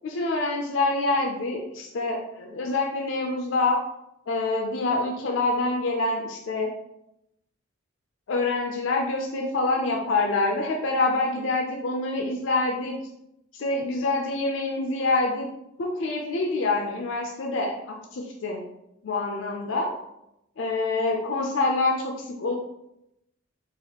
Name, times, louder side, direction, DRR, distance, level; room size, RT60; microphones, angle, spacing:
voice 1, 0.0-3.8 4.3-6.7 8.3-13.0 13.5-15.5 15.8-18.6 19.0-19.9 20.6-22.5, left 3 dB, 70° left, 1 dB, 0.4 m, -26 dB
4.1 x 2.5 x 2.8 m, 0.84 s
head